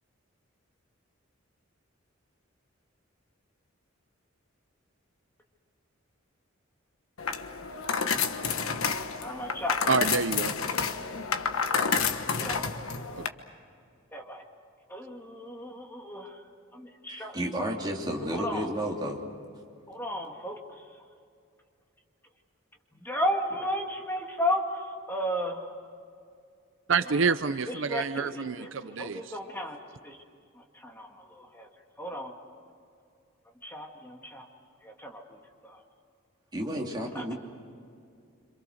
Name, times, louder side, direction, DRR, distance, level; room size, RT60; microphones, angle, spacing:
sound 1, 7.2-13.3, left 6 dB, 80° left, 1.3 m, -29 dB
voice 1, 9.2-9.8 12.3-12.9 14.1-14.4 14.9-16.3 16.7-17.7 18.3-18.7 19.9-20.6 23.0-24.6 25.1-25.6 27.7-29.8 30.0-30.2 30.8-31.7 32.0-32.3 33.6-34.4 34.8-35.4 35.6-35.8 37.1-37.3, equal, 10° left, 1 dB, 2.0 m, -34 dB
voice 2, 9.9-10.5 13.2-13.3 26.9-29.4, right 5 dB, 60° right, 12 dB, 0.6 m, -28 dB
voice 3, 17.1-19.2 36.5-37.3, equal, 20° right, -1 dB, 2.9 m, -32 dB
27.5 x 26.5 x 6.5 m, 2.4 s
head